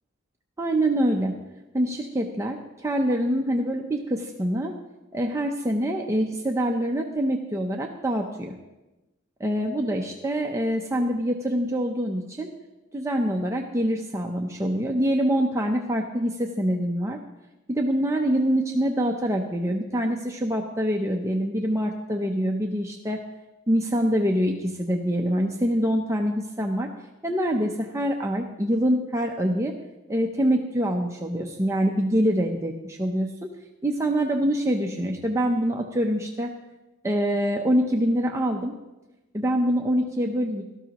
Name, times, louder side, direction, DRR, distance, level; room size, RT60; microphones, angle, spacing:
voice 1, 0.6-1.4 1.7-4.8 5.1-8.6 9.4-12.5 12.9-17.2 17.7-23.2 23.7-26.9 27.2-29.7 30.1-33.5 33.8-36.5 37.0-38.8 39.3-40.6, equal, 15° right, 1 dB, 0.7 m, -25 dB
17.5 x 13.0 x 3.0 m, 1.0 s
head